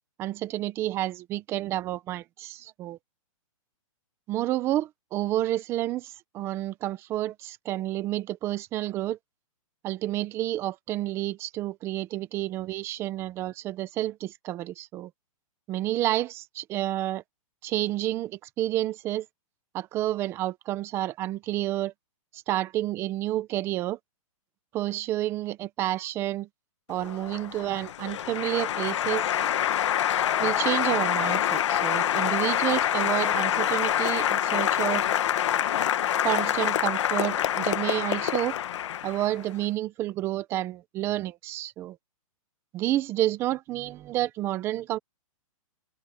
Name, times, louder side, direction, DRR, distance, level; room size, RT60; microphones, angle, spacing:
voice 1, 0.2-3.0 4.3-9.2 9.8-15.1 15.7-17.2 17.6-19.3 19.7-21.9 22.3-24.0 24.7-26.5 26.9-29.2 30.4-35.1 36.2-38.6 39.0-42.0 42.7-45.0, right 14 dB, 15° right, 0.7 m, -30 dB
Applause, 27.0-39.5, left 10 dB, 55° left, 1.5 m, -26 dB
hypercardioid pair, 170°, 18 cm